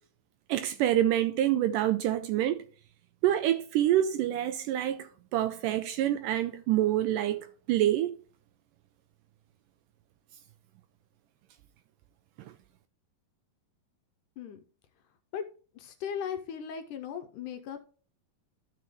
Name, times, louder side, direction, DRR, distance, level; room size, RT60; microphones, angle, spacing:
voice 1, 0.5-2.6 3.2-8.1 12.4-12.5, right 12 dB, 80° right, 1.9 m, -27 dB
voice 2, 15.7-17.8, left 8 dB, 80° left, 2.0 m, -37 dB
13.0 x 5.7 x 3.1 m
omnidirectional pair, 4.2 m